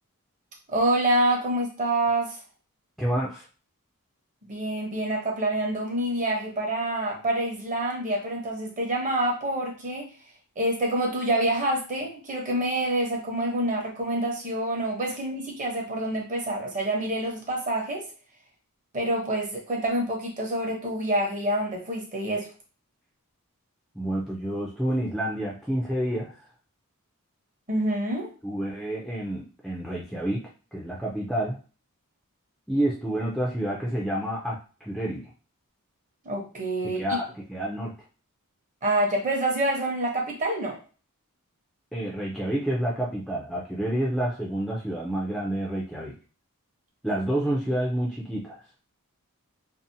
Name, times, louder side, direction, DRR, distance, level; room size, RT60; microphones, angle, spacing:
voice 1, 0.7-2.3 4.5-10.1 10.6-18.0 18.9-22.5 27.7-28.3 36.2-37.2 38.8-40.8, right 1 dB, 35° right, -1 dB, 0.8 m, -27 dB
voice 2, 3.0-3.4 23.9-26.3 28.4-31.6 32.7-35.3 36.8-37.9 41.9-46.2 47.0-48.6, right 1 dB, ahead, -4 dB, 0.4 m, -29 dB
2.7 x 2.0 x 2.6 m, 0.36 s
head